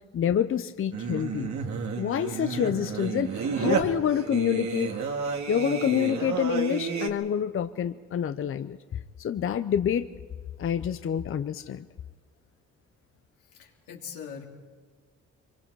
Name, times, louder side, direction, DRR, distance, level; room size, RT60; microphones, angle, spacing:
voice 1, 0.1-1.5 2.0-4.9 5.5-10.1 10.6-11.9, left 9 dB, 45° left, 10 dB, 0.6 m, -27 dB
Singing, 0.9-7.1, right 5 dB, 70° right, 2.0 m, -31 dB
voice 2, 13.5-14.4, left 7 dB, 90° left, -1 dB, 3.4 m, -41 dB
24.5 x 23.5 x 4.7 m, 1.4 s
cardioid pair, 90°, 30 cm